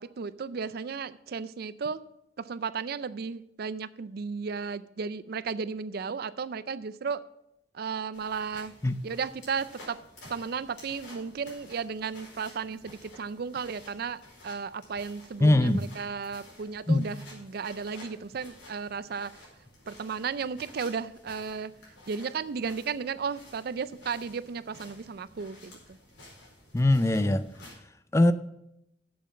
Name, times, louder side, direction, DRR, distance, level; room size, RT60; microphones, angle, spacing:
voice 1, 0.0-2.0 2.4-7.2 7.7-8.7 9.0-10.0 10.3-19.4 19.9-21.7 22.1-26.0, right 5 dB, 55° right, 16 dB, 0.4 m, -34 dB
sound 1, 8.1-27.7, left 1 dB, 70° left, 4.6 m, -52 dB
voice 2, 15.4-15.8 16.9-17.0 26.7-27.4 28.1-28.3, left 1 dB, 15° left, 13 dB, 0.4 m, -21 dB
7.7 x 7.0 x 7.3 m, 0.82 s
head